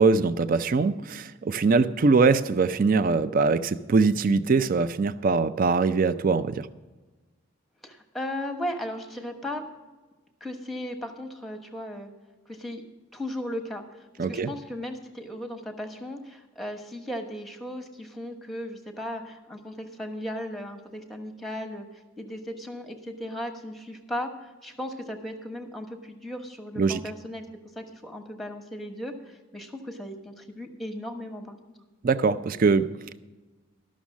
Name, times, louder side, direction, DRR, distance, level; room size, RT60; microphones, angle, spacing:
voice 1, 0.0-6.7 14.2-14.5 26.8-27.0 32.0-33.2, right 4 dB, 45° right, 14 dB, 0.4 m, -22 dB
voice 2, 7.8-9.6 10.4-12.1 12.5-12.8 13.1-21.9 22.2-24.3 24.6-27.4 27.7-31.6, left 1 dB, ahead, 5 dB, 1.1 m, -36 dB
13.0 x 6.3 x 7.2 m, 1.2 s
head